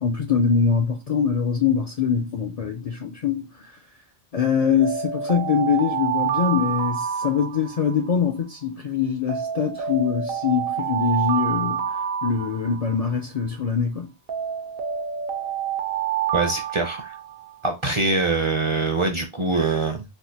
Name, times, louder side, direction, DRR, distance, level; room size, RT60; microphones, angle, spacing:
voice 1, 0.0-3.4 4.3-11.9 12.2-14.1, left 6 dB, 55° left, 0.4 m, -23 dB
Alarm, 4.8-8.1 9.3-13.1 14.3-17.5, right 9 dB, 70° right, 0.8 m, -28 dB
voice 2, 16.3-17.1 17.6-20.0, right 3 dB, 40° right, 0.5 m, -23 dB
3.4 x 2.4 x 2.7 m
omnidirectional pair, 1.1 m